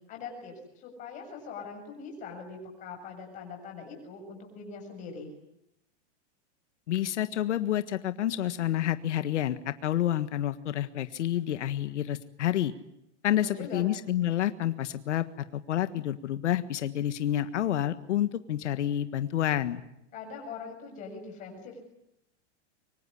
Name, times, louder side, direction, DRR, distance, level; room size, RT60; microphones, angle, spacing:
voice 1, 0.1-5.3 13.4-13.9 20.1-21.8, left 5 dB, 20° left, 2 dB, 7.2 m, -42 dB
voice 2, 6.9-12.7 13.2-15.3 15.5-19.8, left 12 dB, 85° left, 11 dB, 1.6 m, -29 dB
25.0 x 24.0 x 9.9 m, 0.84 s
supercardioid pair, 180°, 35 cm